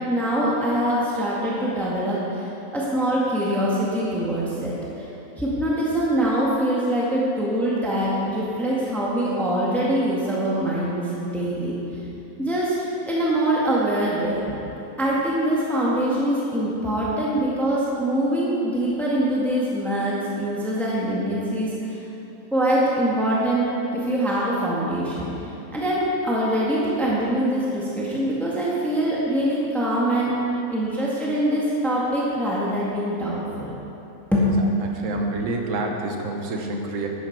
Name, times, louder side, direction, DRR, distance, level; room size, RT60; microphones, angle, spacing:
voice 1, 0.0-5.1 5.4-12.0 12.4-12.7 13.1-14.6 15.0-22.0 22.5-25.3 25.7-30.4 30.7-33.7 34.3-34.5, right 1 dB, ahead, -6 dB, 1.5 m, -24 dB
voice 2, 34.6-37.1, right 2 dB, 65° right, 2 dB, 1.4 m, -28 dB
12.0 x 9.5 x 4.6 m, 3.0 s
omnidirectional pair, 1.5 m